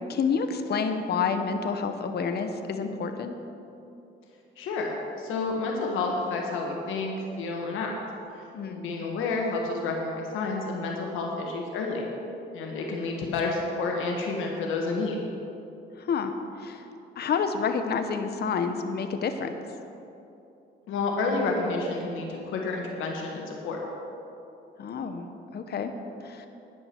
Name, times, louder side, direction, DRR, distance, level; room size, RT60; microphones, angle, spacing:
voice 1, 0.1-3.4 8.5-8.8 16.0-16.3 16.6-16.8 17.2-19.5 24.8-25.3 25.5-25.9 26.2-26.5, left 5 dB, 55° left, 7 dB, 0.9 m, -29 dB
voice 2, 4.6-7.9 8.7-12.1 12.5-15.2 20.9-23.8, left 3 dB, 85° left, 0 dB, 1.5 m, -30 dB
12.5 x 10.0 x 4.5 m, 2.8 s
cardioid pair, 90°, 20 cm